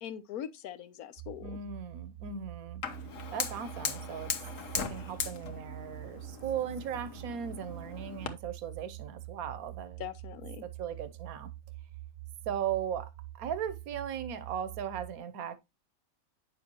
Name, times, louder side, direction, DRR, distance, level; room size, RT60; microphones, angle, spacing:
voice 1, 0.0-1.6 10.0-10.6, left 9 dB, 90° left, 1.3 m, -41 dB
sound 1, 1.2-15.2, right 16 dB, 40° right, 0.9 m, -46 dB
voice 2, 1.4-2.8 3.3-4.3 4.9-10.0 10.6-11.5 12.5-15.6, right 8 dB, 85° right, 1.2 m, -37 dB
Fire, 2.8-8.3, left 6 dB, 65° left, 1.4 m, -39 dB
9.5 x 6.7 x 3.0 m
omnidirectional pair, 1.5 m